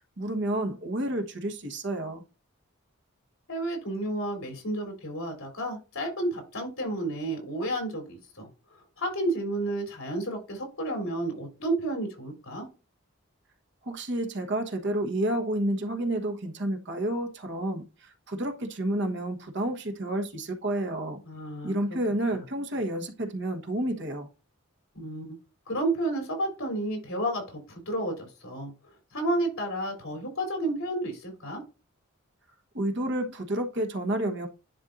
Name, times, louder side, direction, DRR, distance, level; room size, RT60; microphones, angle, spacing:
voice 1, 0.2-2.2 13.8-21.2 21.6-24.3 32.7-34.5, right 1 dB, 55° right, 1.3 m, -30 dB
voice 2, 3.5-8.5 9.0-12.7 21.3-21.8 22.3-22.4 24.9-25.4 25.7-28.7 29.1-31.6, right 1 dB, 75° left, 3.5 m, -31 dB
10.5 x 4.5 x 2.6 m
head